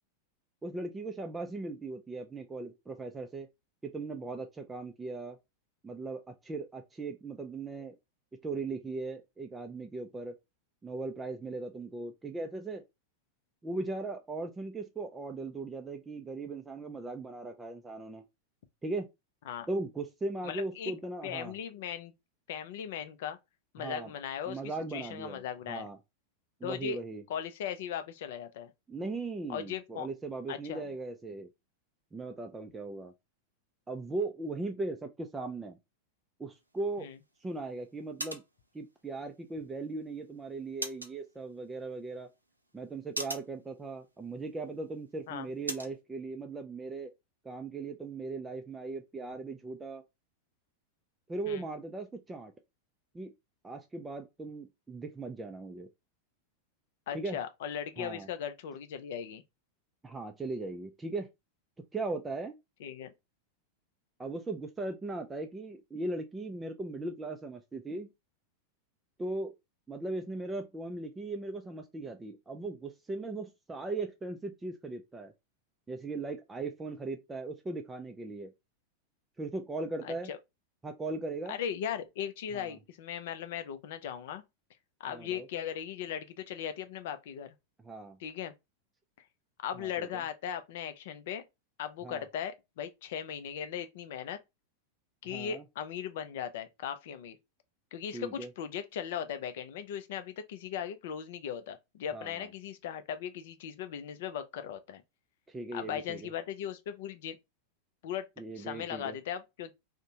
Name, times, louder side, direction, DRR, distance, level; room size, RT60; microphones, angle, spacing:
voice 1, 0.6-3.5 3.8-5.4 5.8-8.0 8.4-10.4 10.8-12.8 13.6-18.2 18.8-19.1 19.7-21.6 23.8-24.1 24.5-25.4 25.7-26.0 26.6-27.2 28.9-31.5 32.1-33.1 33.9-35.8 36.4-37.1 37.4-38.4 38.7-42.3 42.7-47.1 47.4-50.0 51.3-52.5 53.1-53.3 53.6-55.9 57.1-57.4 58.0-58.3 60.0-61.3 61.9-62.5 64.2-68.1 69.2-69.5 69.9-75.3 75.9-78.5 79.4-80.3 80.8-81.6 82.5-82.8 85.1-85.5 87.8-88.2 89.8-90.1 92.0-92.2 95.2-95.6 98.1-98.5 102.1-102.5 105.5-106.3 108.4-109.2, right 3 dB, 15° right, 0.3 m, -38 dB
voice 2, 20.4-20.9 21.2-22.1 22.5-23.4 23.7-24.6 24.9-25.9 26.6-27.0 27.3-28.7 29.5-30.1 30.5-30.9 37.0-37.2 45.3-45.5 51.5-51.6 57.1-59.4 62.8-63.1 80.0-80.4 81.5-84.4 85.0-87.5 88.2-88.5 89.6-91.4 91.8-94.4 95.2-97.4 97.9-105.0 105.7-107.4 108.0-108.3 108.5-109.7, left 9 dB, 55° left, 0.4 m, -38 dB
sound 1, 36.5-46.0, right 1 dB, 85° right, 0.4 m, -46 dB
2.5 x 2.1 x 2.8 m
figure-of-eight pair, 90°, 0 cm